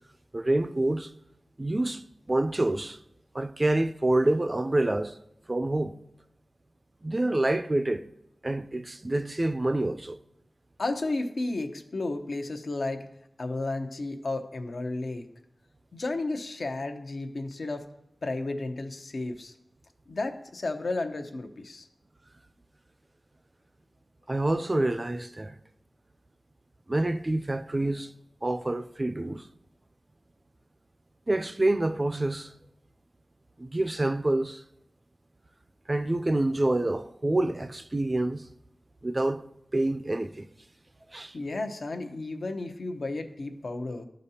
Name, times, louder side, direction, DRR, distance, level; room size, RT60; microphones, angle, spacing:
voice 1, 0.3-1.1 1.6-3.0 3.3-5.2 5.5-6.0 7.0-8.0 8.4-10.2 24.3-25.6 26.9-28.1 28.4-29.5 31.3-32.5 33.6-34.6 35.9-38.5 39.0-39.4 39.7-40.5 41.1-41.4, right 2 dB, 30° right, 0.4 m, -27 dB
voice 2, 10.8-13.1 13.4-15.3 15.9-17.9 18.2-19.5 20.1-21.9 41.3-44.0, left 2 dB, 75° left, 0.7 m, -33 dB
12.0 x 5.1 x 2.8 m
wide cardioid pair, 75°, 0 cm